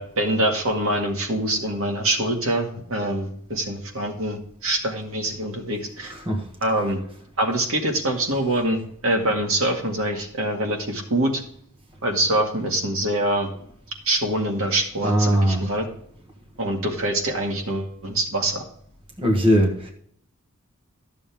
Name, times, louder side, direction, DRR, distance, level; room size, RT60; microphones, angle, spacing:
voice 1, 0.0-6.1 6.6-7.0 7.4-11.4 12.0-13.5 14.1-15.9 16.6-18.6, right 1 dB, 70° right, 2.0 m, -24 dB
voice 2, 6.0-6.4 15.0-15.7 19.2-19.9, equal, 25° right, 1.4 m, -20 dB
13.0 x 7.0 x 3.6 m
head